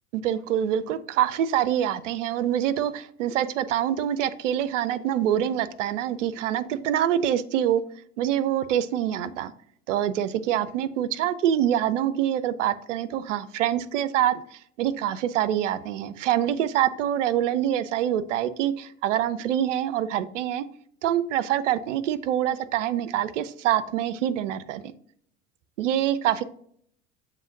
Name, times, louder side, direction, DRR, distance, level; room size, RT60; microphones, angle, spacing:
voice 1, 0.1-7.8 8.2-9.5 9.9-20.7 21.0-24.9 25.8-26.4, right 11 dB, 75° right, 14 dB, 0.5 m, -25 dB
7.0 x 2.9 x 2.5 m, 0.64 s
hypercardioid pair, 75°, 37 cm